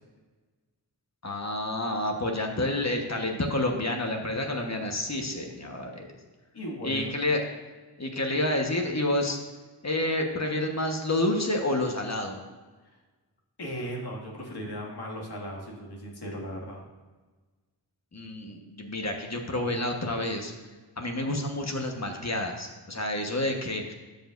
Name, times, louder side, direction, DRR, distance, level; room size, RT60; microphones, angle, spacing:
voice 1, 1.2-6.1 6.8-7.4 8.0-9.4 9.8-12.4 18.1-20.5 21.0-23.9, left 1 dB, 40° left, 2 dB, 1.3 m, -29 dB
voice 2, 6.5-7.1 13.6-16.8, equal, 65° left, -2 dB, 2.1 m, -37 dB
13.0 x 5.3 x 2.6 m, 1.3 s
cardioid pair, 50°, 42 cm